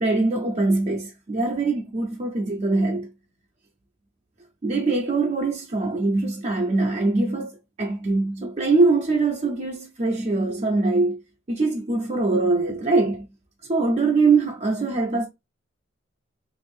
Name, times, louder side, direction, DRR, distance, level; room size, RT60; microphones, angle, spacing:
voice 1, 0.0-3.1 4.6-11.2 11.5-13.3 13.7-15.3, right 3 dB, 35° right, 0.5 m, -23 dB
3.4 x 2.5 x 3.3 m
head